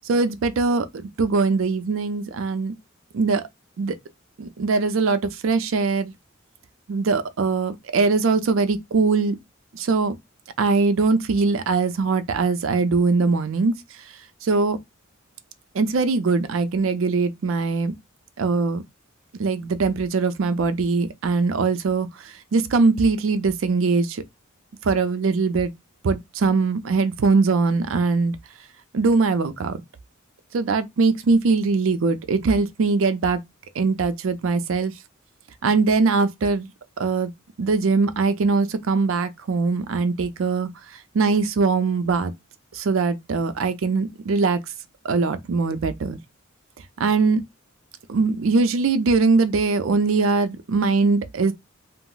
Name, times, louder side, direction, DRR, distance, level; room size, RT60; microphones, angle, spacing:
voice 1, 0.0-0.9 1.2-2.7 3.1-3.4 3.8-3.9 4.4-6.1 6.9-9.4 9.7-10.2 10.6-13.8 14.4-14.8 15.7-17.9 18.4-18.8 19.4-24.2 24.8-25.7 26.0-28.4 28.9-29.8 30.5-33.4 33.7-34.9 35.6-36.7 37.0-37.3 37.6-40.7 41.1-42.3 42.7-44.6 45.0-46.2 47.0-47.4 48.1-51.5, right 4 dB, 65° right, 0.4 m, -21 dB
2.3 x 2.0 x 3.8 m
head